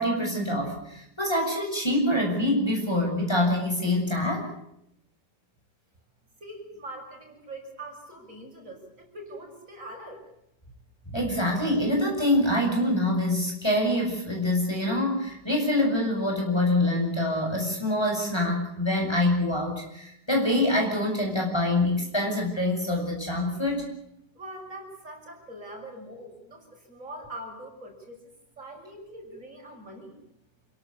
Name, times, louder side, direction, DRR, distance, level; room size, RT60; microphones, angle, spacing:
voice 1, 0.0-4.5 11.1-23.8, left 1 dB, 15° left, 0 dB, 7.3 m, -25 dB
voice 2, 6.4-10.2 24.4-28.2 28.6-30.2, right 1 dB, 50° right, 1 dB, 7.2 m, -42 dB
28.0 x 17.5 x 8.6 m, 0.77 s
omnidirectional pair, 1.8 m